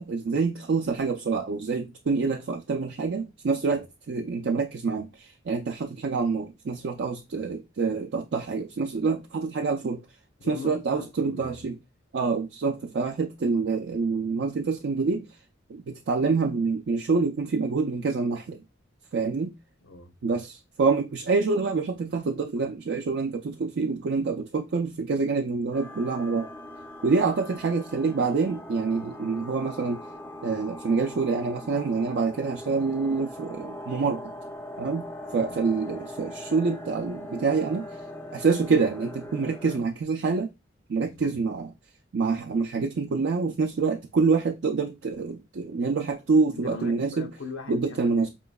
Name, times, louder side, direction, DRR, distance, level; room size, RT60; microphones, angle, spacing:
voice 1, 0.0-10.0 10.5-11.8 12.1-15.3 15.7-18.6 19.1-19.5 20.2-26.5 27.0-30.0 30.4-34.3 34.8-35.1 35.3-37.9 38.3-40.5 40.9-41.7 42.1-47.3 47.7-48.3, right 4 dB, 65° right, 0.4 m, -26 dB
voice 2, 10.4-11.7 19.8-20.1 35.4-35.6 41.0-41.4 46.5-48.3, left 4 dB, 85° left, 0.7 m, -41 dB
sound 1, 25.7-39.8, left 1 dB, 10° left, 0.3 m, -41 dB
4.7 x 3.0 x 2.2 m
head